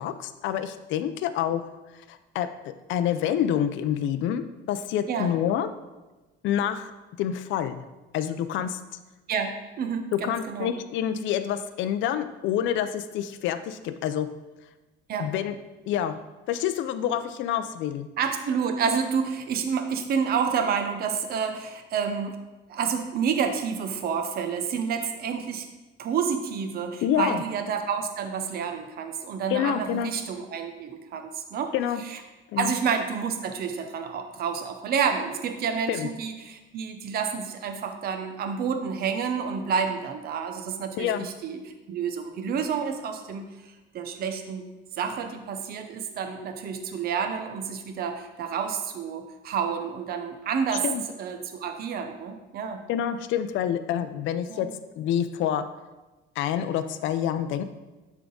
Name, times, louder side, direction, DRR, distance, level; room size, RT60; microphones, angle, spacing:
voice 1, 0.0-1.7 1.9-5.7 6.4-6.9 7.2-7.8 8.1-8.8 10.1-14.3 15.2-15.6 15.9-16.2 16.5-18.1 27.0-27.4 29.5-30.1 31.7-32.0 32.5-32.7 35.9-36.1 41.0-41.3 50.7-51.0 52.9-54.7 55.0-55.6 56.4-57.6, left 10 dB, 65° left, 10 dB, 0.5 m, -27 dB
voice 2, 9.3-10.7 15.1-15.3 18.2-22.4 22.7-25.6 26.0-31.7 32.0-32.2 32.6-41.6 41.9-43.4 43.9-44.6 45.0-50.8 51.2-52.8 54.5-54.7, right 6 dB, 45° right, 6 dB, 0.7 m, -29 dB
10.5 x 3.6 x 3.9 m, 1.1 s
cardioid pair, 155°, 21 cm